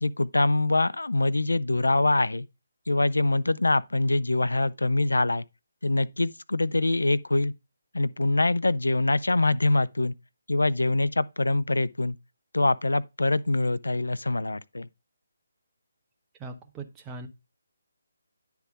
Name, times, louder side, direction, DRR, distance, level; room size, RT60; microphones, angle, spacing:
voice 1, 0.0-2.5 2.9-5.4 5.8-7.5 7.9-10.1 10.5-12.2 12.5-14.9, left 2 dB, 80° left, 0.4 m, -24 dB
voice 2, 16.4-17.3, right 3 dB, 15° right, 0.9 m, -40 dB
9.7 x 3.5 x 4.8 m
figure-of-eight pair, 150°, 0 cm